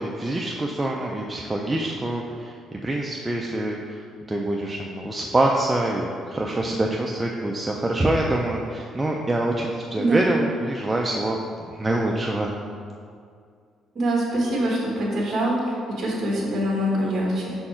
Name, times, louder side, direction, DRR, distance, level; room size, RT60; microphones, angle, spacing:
voice 1, 0.0-11.4 11.7-12.5, right 1 dB, 10° right, -1 dB, 0.3 m, -25 dB
voice 2, 10.0-10.3 13.9-17.6, right 1 dB, 35° right, -3 dB, 1.4 m, -24 dB
5.7 x 4.4 x 4.3 m, 2.2 s
cardioid pair, 175°, 0 cm